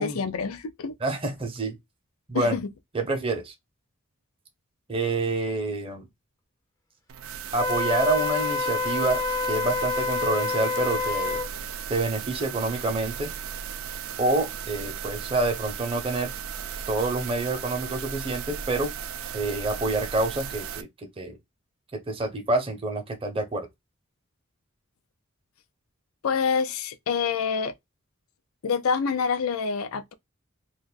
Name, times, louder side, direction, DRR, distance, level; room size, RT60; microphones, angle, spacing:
voice 1, 0.0-0.9 2.3-2.7 26.2-27.7 28.6-30.1, left 6 dB, 90° left, 0.5 m, -27 dB
voice 2, 1.0-1.8 2.3-2.5 2.9-3.5 4.9-6.1 7.5-9.2 9.5-11.4 11.9-13.3 14.2-16.3 16.9-18.9 19.3-21.4 21.9-23.7, right 2 dB, 25° right, 0.7 m, -27 dB
sound 1, 7.1-20.8, right 8 dB, 80° right, 0.4 m, -36 dB
Wind instrument woodwind instrument, 7.6-11.5, left 3 dB, 15° left, 0.5 m, -27 dB
2.5 x 2.3 x 3.8 m
head